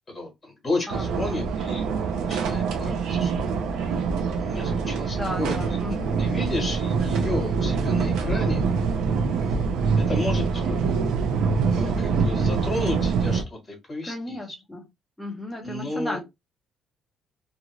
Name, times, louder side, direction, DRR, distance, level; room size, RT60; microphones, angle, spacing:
voice 1, 0.1-2.0 2.3-3.3 4.4-8.6 10.0-10.8 11.7-14.4 15.6-16.2, left 2 dB, 25° left, 1.3 m, -32 dB
voice 2, 0.9-1.4 5.1-6.2 14.0-14.8 15.2-16.2, left 1 dB, 5° left, 0.9 m, -34 dB
sound 1, 0.9-13.4, right 5 dB, 80° right, 0.6 m, -25 dB
2.6 x 2.4 x 3.0 m
cardioid pair, 165°, 0 cm